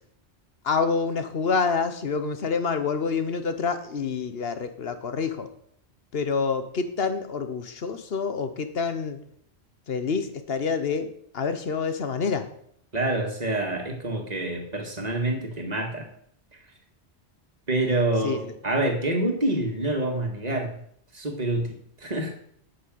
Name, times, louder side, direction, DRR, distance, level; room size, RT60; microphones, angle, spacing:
voice 1, 0.6-5.5 6.1-9.2 9.9-12.5 18.2-18.5, left 5 dB, 60° left, 10 dB, 1.3 m, -27 dB
voice 2, 12.9-16.1 17.7-20.8 21.1-22.3, right 2 dB, 40° right, 3 dB, 2.1 m, -27 dB
9.0 x 6.9 x 7.8 m, 0.67 s
omnidirectional pair, 1.1 m